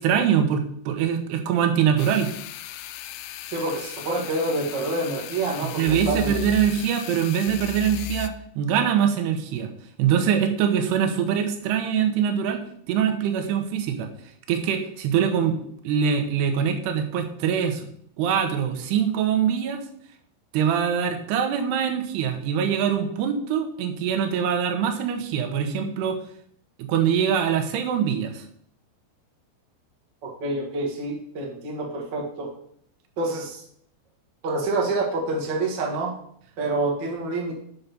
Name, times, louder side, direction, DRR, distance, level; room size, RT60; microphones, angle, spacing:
voice 1, 0.0-2.3 5.8-9.7 10.0-12.6 12.9-14.1 14.5-15.6 15.8-17.9 18.2-19.8 20.5-26.2 26.8-28.5, right 8 dB, 80° right, 6 dB, 2.9 m, -23 dB
sound 1, 2.0-8.3, left 12 dB, 85° left, 2.5 m, -36 dB
voice 2, 3.5-6.4 30.2-32.5 33.2-33.6 34.4-36.1 36.6-37.5, right 2 dB, 60° right, -1 dB, 1.1 m, -27 dB
7.0 x 5.8 x 5.2 m, 0.65 s
omnidirectional pair, 4.9 m